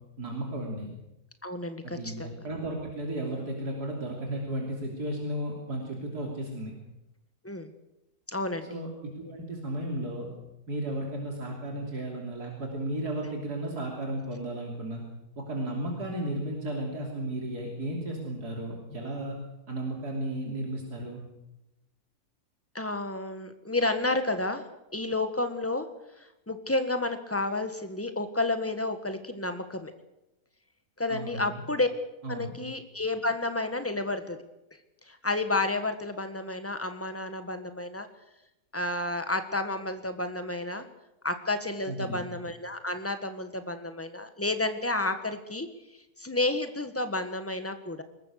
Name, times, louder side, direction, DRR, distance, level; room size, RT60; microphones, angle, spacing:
voice 1, 0.2-0.9 1.8-6.7 8.7-10.3 10.7-15.0 15.4-19.4 19.7-21.2 31.1-31.6 32.2-32.5 41.9-42.3, right 1 dB, 80° right, 0 dB, 3.7 m, -34 dB
voice 2, 1.4-2.4 7.4-7.7 8.3-8.8 22.7-24.6 24.9-25.8 26.2-29.9 31.0-31.9 32.3-34.4 35.0-38.1 38.7-40.9 41.2-45.7 46.2-48.0, left 2 dB, 10° left, 8 dB, 1.5 m, -31 dB
22.0 x 20.0 x 6.6 m, 0.92 s
omnidirectional pair, 1.7 m